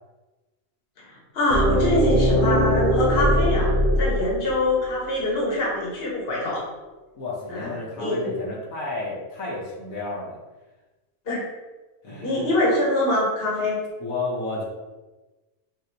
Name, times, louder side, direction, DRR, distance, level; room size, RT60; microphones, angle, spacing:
voice 1, 1.0-6.6 7.5-7.7 8.0-8.3 11.3-11.4 12.2-13.8, left 1 dB, 45° left, -4 dB, 1.3 m, -24 dB
sound 1, 1.5-5.4, equal, 55° right, 1.0 m, -21 dB
voice 2, 7.2-10.4 12.0-12.5 14.0-14.6, left 3 dB, 75° left, -5 dB, 1.4 m, -31 dB
5.8 x 2.7 x 2.9 m, 1.1 s
omnidirectional pair, 1.5 m